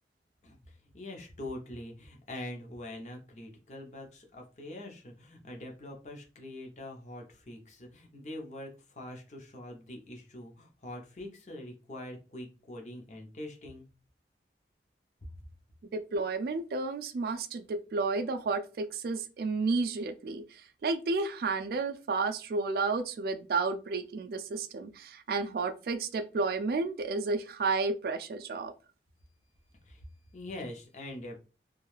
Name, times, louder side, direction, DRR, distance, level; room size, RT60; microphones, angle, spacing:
voice 1, 0.4-13.9 29.8-30.1 30.3-31.4, left 1 dB, 40° left, 1 dB, 0.7 m, -44 dB
voice 2, 15.9-28.7, right 3 dB, 55° right, 8 dB, 0.3 m, -32 dB
2.5 x 2.3 x 3.1 m, 0.33 s
head